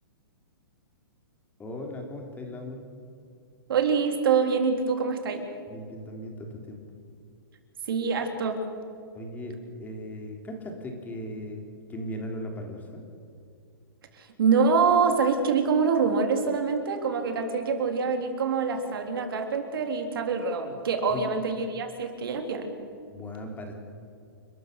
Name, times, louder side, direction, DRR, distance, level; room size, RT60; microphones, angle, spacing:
voice 1, 1.6-2.8 5.7-6.8 9.1-9.6 9.8-11.6 11.9-13.0 21.1-21.3 23.1-23.7, left 1 dB, 15° left, 2 dB, 3.4 m, -37 dB
voice 2, 3.7-5.4 7.9-8.7 14.2-22.7, right 5 dB, 70° right, 5 dB, 3.5 m, -25 dB
29.5 x 13.5 x 6.7 m, 2.4 s
hypercardioid pair, 140°, 12 cm